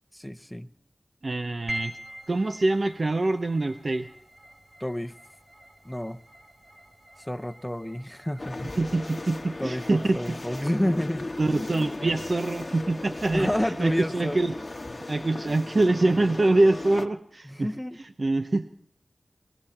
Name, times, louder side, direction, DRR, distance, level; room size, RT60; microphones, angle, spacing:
voice 1, 0.1-0.7 4.8-5.1 5.8-6.2 7.2-8.8 9.6-11.3 11.6-11.7 13.3-14.4 17.4-18.0, left 1 dB, 10° left, 9 dB, 0.8 m, -30 dB
voice 2, 1.2-1.9 2.3-4.1 8.8-10.9 11.4-14.5 14.9-17.7 18.0-18.7, right 2 dB, 60° right, 7 dB, 0.7 m, -25 dB
sound 1, 1.7-16.1, equal, 35° right, 2.6 m, -46 dB
sound 2, 8.4-17.1, left 2 dB, 45° left, 1.2 m, -37 dB
21.5 x 15.5 x 4.3 m, 0.69 s
wide cardioid pair, 55°, 0 cm